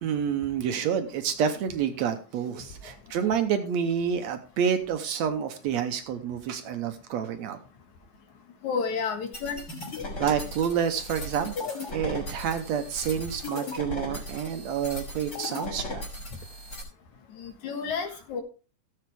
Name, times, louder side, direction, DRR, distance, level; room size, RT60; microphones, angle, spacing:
voice 1, 0.0-7.6 10.2-16.0, right 8 dB, 70° right, 8 dB, 1.9 m, -28 dB
voice 2, 8.6-9.6 17.3-18.4, left 5 dB, 70° left, 5 dB, 2.9 m, -31 dB
sound 1, 9.3-16.8, left 2 dB, 30° left, 5.4 m, -37 dB
17.0 x 7.8 x 3.4 m, 0.35 s
omnidirectional pair, 3.6 m